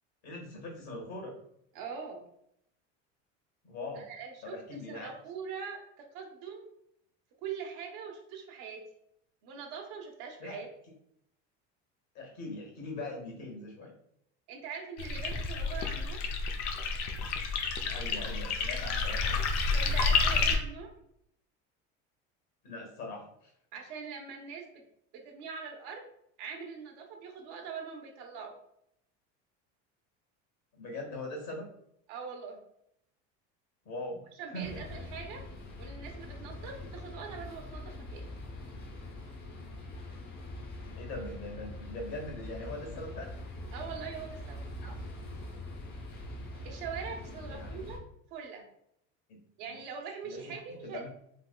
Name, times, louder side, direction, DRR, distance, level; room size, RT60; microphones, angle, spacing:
voice 1, 0.2-1.3 3.6-4.1 4.4-5.1 10.4-10.6 12.1-13.9 17.8-19.4 22.6-23.5 30.7-31.7 33.8-35.0 40.9-43.3 44.8-45.0 47.4-47.8 49.3-49.4 49.7-49.8 50.2-50.5 50.8-51.1, left 2 dB, 55° left, 1 dB, 1.4 m, -41 dB
voice 2, 1.7-2.3 4.0-4.5 4.9-6.7 7.4-8.8 9.4-10.7 14.5-16.2 19.7-20.9 23.7-24.7 25.1-26.0 26.4-28.5 32.1-32.6 34.4-35.4 35.8-38.3 43.7-44.6 46.6-48.0 48.3-48.6 49.6-51.1, right 6 dB, 70° right, 1 dB, 0.9 m, -42 dB
sound 1, 15.0-20.6, left 4 dB, 80° left, 0.7 m, -30 dB
sound 2, 34.6-48.0, left 1 dB, 30° left, 0.7 m, -43 dB
3.4 x 2.9 x 2.2 m, 0.73 s
supercardioid pair, 125°, 33 cm